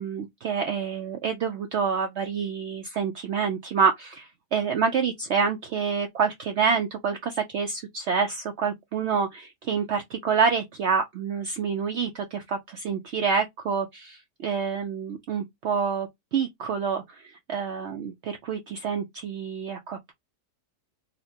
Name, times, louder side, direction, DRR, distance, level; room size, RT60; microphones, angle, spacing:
voice 1, 0.0-20.1, right 6 dB, 90° right, 0.6 m, -27 dB
4.1 x 2.1 x 2.7 m
omnidirectional pair, 1.7 m